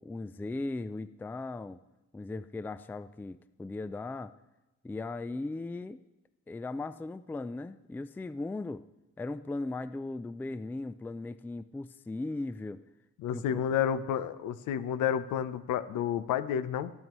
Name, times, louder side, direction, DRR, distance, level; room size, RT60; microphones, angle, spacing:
voice 1, 0.0-1.8 2.1-4.3 4.8-6.0 6.5-8.8 9.2-12.8 13.3-13.6, left 2 dB, 5° left, 14 dB, 0.3 m, -38 dB
voice 2, 13.2-16.9, left 9 dB, 85° left, 14 dB, 0.7 m, -30 dB
17.5 x 9.5 x 3.1 m, 1.1 s
cardioid pair, 90°, 30 cm